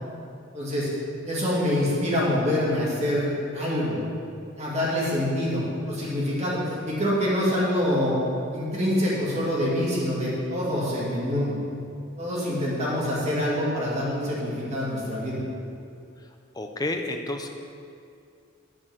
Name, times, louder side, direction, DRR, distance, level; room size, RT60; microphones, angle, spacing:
voice 1, 0.5-0.9 1.2-4.0 4.6-8.1 8.5-11.5 12.2-15.4, left 1 dB, 35° right, -6 dB, 2.3 m, -26 dB
voice 2, 16.5-17.5, left 2 dB, 20° left, 4 dB, 0.6 m, -30 dB
8.8 x 4.4 x 7.3 m, 2.5 s
head